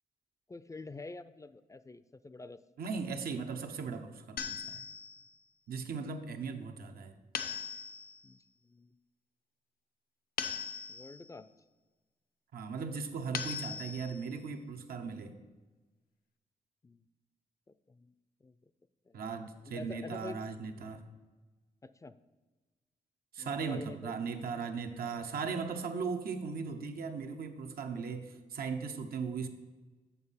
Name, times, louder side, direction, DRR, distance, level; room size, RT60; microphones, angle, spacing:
voice 1, 0.5-2.6 8.2-8.4 8.6-8.9 10.9-11.5 16.8-17.0 17.7-18.1 18.4-18.5 19.1-19.3 19.7-20.4 21.8-22.2 23.4-24.2, left 3 dB, 20° left, 14 dB, 0.3 m, -47 dB
voice 2, 2.8-4.8 5.7-7.1 12.5-15.4 19.1-21.0 23.3-29.5, right 5 dB, 90° right, 6 dB, 0.8 m, -38 dB
sound 1, 4.4-5.3 7.4-8.2 10.4-11.3 13.3-14.3, left 6 dB, 80° left, 0.6 m, -39 dB
7.1 x 6.2 x 5.6 m, 1.3 s
cardioid pair, 80°, 15 cm